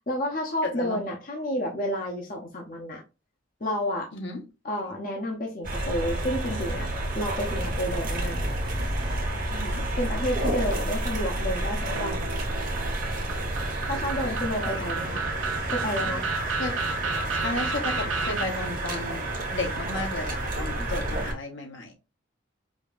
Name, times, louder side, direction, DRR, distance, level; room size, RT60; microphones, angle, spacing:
voice 1, 0.1-3.0 3.6-4.1 4.6-6.9 7.1-8.4 10.0-12.3 13.6-15.2 15.7-16.3, left 1 dB, 45° left, 0.8 m, -30 dB
voice 2, 0.6-1.0 4.1-4.4 9.5-9.9 14.6-14.9 16.6-16.7 17.2-21.9, left 2 dB, 65° left, 1.1 m, -33 dB
sound 1, 5.6-21.3, right 1 dB, 40° right, 1.1 m, -30 dB
sound 2, 7.4-9.8, equal, 20° right, 0.6 m, -36 dB
sound 3, 11.9-18.4, right 4 dB, 85° right, 0.6 m, -32 dB
5.1 x 2.7 x 2.4 m
head